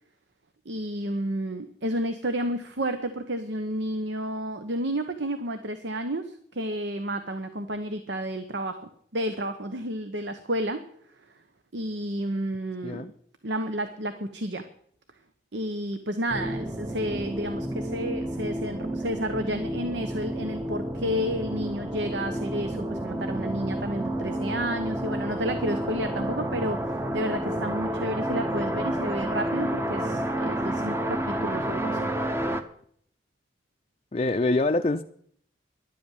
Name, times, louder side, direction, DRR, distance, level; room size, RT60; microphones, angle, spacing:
voice 1, 0.6-10.8 11.7-13.1 13.4-14.7 15.5-32.1, right 1 dB, 75° right, 8 dB, 1.0 m, -31 dB
sound 1, 16.3-32.6, right 1 dB, 15° right, 0.9 m, -30 dB
voice 2, 34.1-35.0, left 2 dB, 35° left, 6 dB, 0.5 m, -25 dB
11.5 x 8.5 x 9.3 m, 0.65 s
head